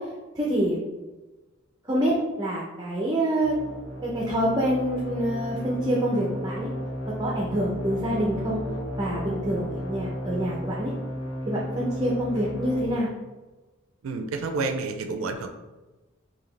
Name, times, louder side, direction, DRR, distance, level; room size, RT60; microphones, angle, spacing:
voice 1, 0.4-0.8 1.8-3.6 4.0-6.7 7.2-8.6 9.0-10.9 11.5-13.1, right 1 dB, 20° right, -4 dB, 0.6 m, -26 dB
sound 1, 3.4-12.8, equal, 70° left, 0.9 m, -33 dB
voice 2, 14.0-15.5, right 3 dB, 70° right, 6 dB, 0.4 m, -29 dB
4.8 x 2.8 x 3.2 m, 1.2 s
head